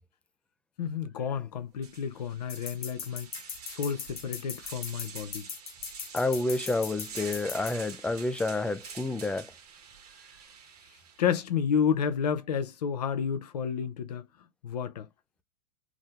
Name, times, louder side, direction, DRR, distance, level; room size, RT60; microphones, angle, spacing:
voice 1, 0.8-3.3 3.7-5.5 11.2-14.3 14.6-15.1, left 7 dB, 70° left, 0.6 m, -30 dB
sound 1, 1.3-1.4 1.8-11.3, right 6 dB, 65° right, 1.3 m, -47 dB
sound 2, 2.5-7.7, left 7 dB, 30° left, 1.0 m, -39 dB
voice 2, 6.1-9.5, left 2 dB, 5° left, 0.4 m, -29 dB
2.7 x 2.5 x 3.4 m
hypercardioid pair, 100°, 21 cm